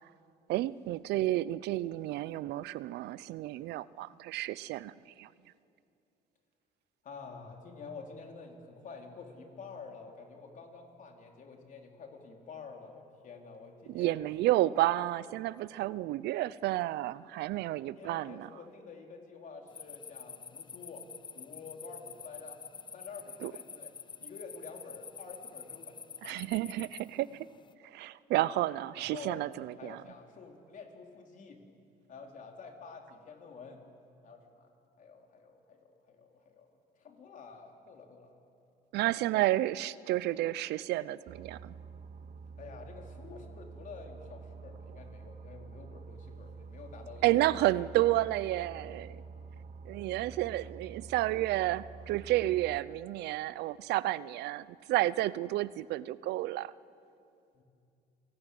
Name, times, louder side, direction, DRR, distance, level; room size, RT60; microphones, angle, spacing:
voice 1, 0.5-4.9 5.2-5.3 13.9-18.5 23.4-23.5 26.2-27.5 27.9-30.0 38.9-41.7 47.2-49.2 49.9-56.7, right 16 dB, 80° right, 19 dB, 0.6 m, -31 dB
voice 2, 7.0-14.2 17.8-21.0 21.3-22.6 22.9-23.9 24.2-26.0 26.3-26.6 29.0-29.5 29.8-31.6 32.1-33.8 34.2-34.7 35.0-36.7 37.0-38.4 42.6-47.8 57.5-57.6, left 4 dB, 50° left, 3 dB, 3.8 m, -49 dB
sound 1, 19.7-27.7, left 6 dB, 30° left, 0.6 m, -48 dB
Boat Water vehicle, 41.3-52.8, right 4 dB, 50° right, 1.0 m, -48 dB
28.0 x 18.0 x 9.3 m, 2.6 s
cardioid pair, 110°, 17 cm